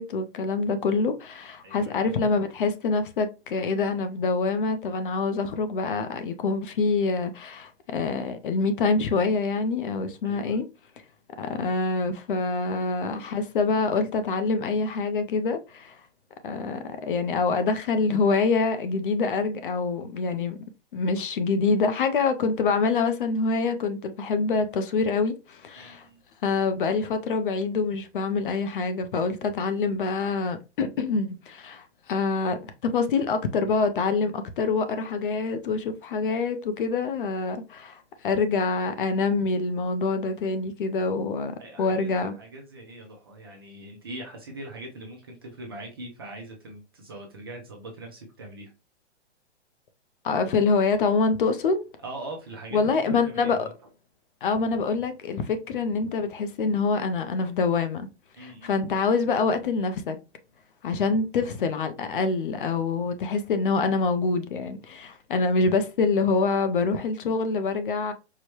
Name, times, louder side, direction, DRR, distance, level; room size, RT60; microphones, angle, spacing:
voice 1, 0.0-10.7 11.4-16.0 16.4-20.6 20.9-26.1 26.4-42.3 50.2-51.9 52.7-53.6 54.4-58.1 58.4-60.2 60.8-68.1, left 4 dB, 50° left, 0.5 m, -26 dB
voice 2, 1.6-2.1 10.2-10.6 25.7-26.2 41.6-48.7 52.0-53.7 58.4-58.7, right 1 dB, 20° right, 0.4 m, -41 dB
4.7 x 2.1 x 2.9 m
hypercardioid pair, 160°, 35 cm